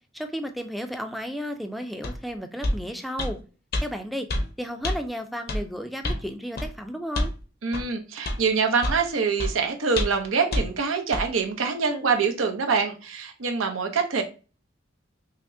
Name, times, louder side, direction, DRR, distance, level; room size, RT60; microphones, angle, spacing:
voice 1, 0.1-3.4 3.8-4.3 4.6-7.3, equal, ahead, 6 dB, 0.4 m, -33 dB
sound 1, 2.0-2.2 2.6-2.8 3.2-3.3 3.7-3.9 4.3-4.5 4.8-5.0 5.5-5.6 6.0-6.2 6.6-6.7 7.1-7.4 7.7-7.9 8.3-8.4 8.8-9.0 9.4-9.5 10.0-10.2 10.5-10.7 11.1-11.3, left 1 dB, 50° left, 0.6 m, -26 dB
voice 2, 7.6-14.2, right 5 dB, 90° right, 4 dB, 0.7 m, -25 dB
5.7 x 2.1 x 2.6 m, 0.34 s
head